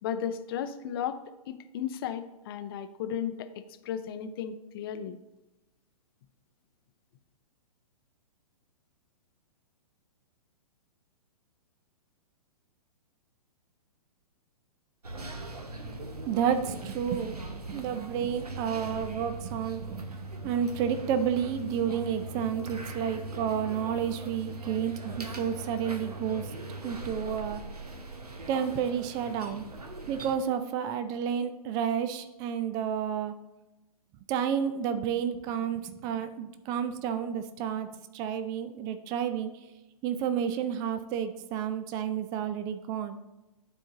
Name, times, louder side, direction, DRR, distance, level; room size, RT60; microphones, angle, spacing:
voice 1, 0.0-5.2, left 9 dB, 40° left, 10 dB, 0.6 m, -35 dB
sound 1, 15.0-30.4, right 2 dB, 80° right, 0.9 m, -40 dB
voice 2, 16.3-20.2 20.4-26.4 26.8-27.6 28.5-29.6 30.1-33.3 34.3-37.9 38.1-39.5 40.0-43.2, right 8 dB, 20° right, 10 dB, 0.4 m, -31 dB
12.0 x 4.4 x 2.9 m, 0.99 s
figure-of-eight pair, 115°, 19 cm